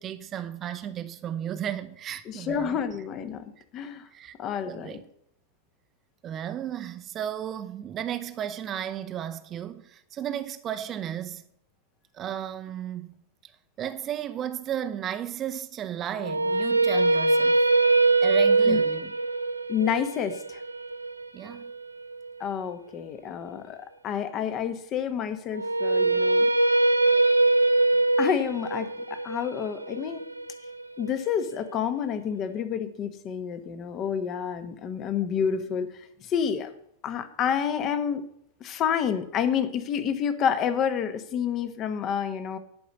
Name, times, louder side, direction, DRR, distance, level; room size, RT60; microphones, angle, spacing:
voice 1, 0.0-2.8 4.1-4.3 4.6-5.0 6.2-11.5 12.1-13.5 13.8-17.7 18.2-19.1 21.3-21.7 27.9-28.0, right 10 dB, 30° right, 0.7 m, -34 dB
voice 2, 2.3-3.4 3.7-4.1 4.4-5.0 18.7-18.8 19.7-20.6 22.4-26.5 28.2-30.2 31.0-36.7 37.0-38.2 38.6-42.6, left 8 dB, 35° left, 1.1 m, -29 dB
sound 1, 16.2-22.3 25.5-31.6, right 2 dB, 85° right, 0.4 m, -23 dB
11.0 x 5.3 x 8.0 m
figure-of-eight pair, 90°, 0 cm